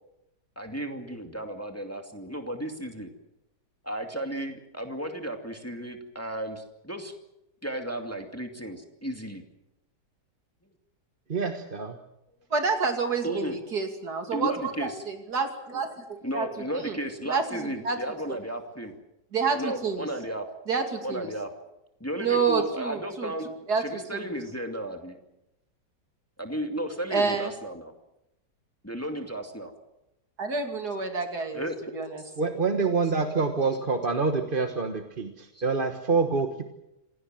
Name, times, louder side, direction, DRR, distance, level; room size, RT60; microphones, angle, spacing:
voice 1, 0.6-3.1 3.8-7.1 7.6-9.4 13.2-13.6 14.3-15.0 16.2-18.9 19.5-20.5 21.0-21.5 22.0-23.5 23.7-25.2 26.4-27.9 28.8-29.7 31.5-31.8 35.5-35.6, right 1 dB, 10° left, 4 dB, 2.3 m, -34 dB
voice 2, 11.3-12.0 32.4-36.6, right 4 dB, 30° right, 6 dB, 1.4 m, -26 dB
voice 3, 12.5-16.5 16.7-16.9 17.3-18.0 18.3-18.4 19.3-20.1 20.7-21.3 22.2-23.3 23.7-24.4 27.1-27.5 30.4-31.6 31.9-32.2, right 5 dB, 60° right, 5 dB, 3.1 m, -28 dB
27.0 x 17.5 x 7.6 m, 0.89 s
omnidirectional pair, 1.9 m